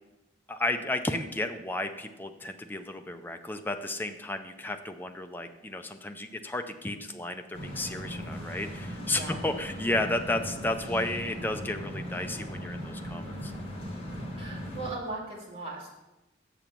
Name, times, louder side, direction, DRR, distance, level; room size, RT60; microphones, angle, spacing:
voice 1, 0.5-13.5, left 1 dB, 10° left, 6 dB, 0.5 m, -33 dB
sound 1, 7.5-14.9, equal, 30° left, 1.6 m, -38 dB
voice 2, 14.4-16.0, right 3 dB, 30° right, -4 dB, 2.5 m, -38 dB
7.1 x 7.0 x 6.0 m, 1.0 s
head